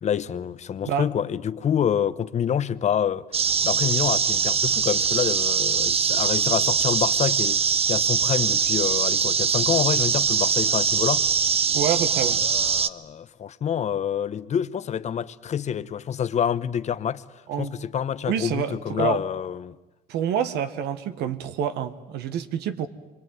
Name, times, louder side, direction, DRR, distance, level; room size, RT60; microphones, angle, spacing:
voice 1, 0.0-3.2 3.6-7.6 7.9-11.3 12.4-17.2 17.6-19.8, left 8 dB, 45° left, 1.0 m, -27 dB
sound 1, 3.3-12.9, right 6 dB, 35° right, 0.9 m, -22 dB
voice 2, 11.7-12.4 17.5-17.7 18.2-19.2 20.1-22.9, right 8 dB, 85° right, 1.6 m, -27 dB
26.5 x 23.0 x 9.4 m
cardioid pair, 110°, 17 cm